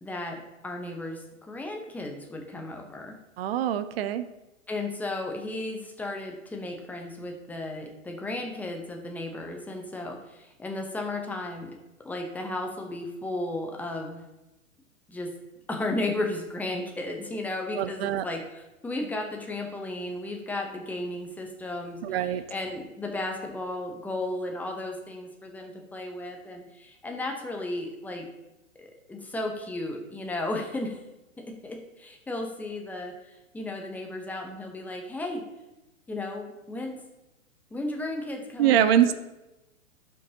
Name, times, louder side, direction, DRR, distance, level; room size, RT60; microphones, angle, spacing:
voice 1, 0.0-3.2 4.7-11.7 12.0-14.2 15.1-15.3 15.7-28.2 28.8-31.0 31.4-35.4 36.1-37.0 37.7-39.1, left 2 dB, 5° left, 2 dB, 0.7 m, -34 dB
voice 2, 3.4-4.2 17.8-18.2 22.0-22.4 38.6-39.1, right 10 dB, 45° right, 12 dB, 0.6 m, -23 dB
12.5 x 5.6 x 2.8 m, 0.99 s
hypercardioid pair, 125°, 41 cm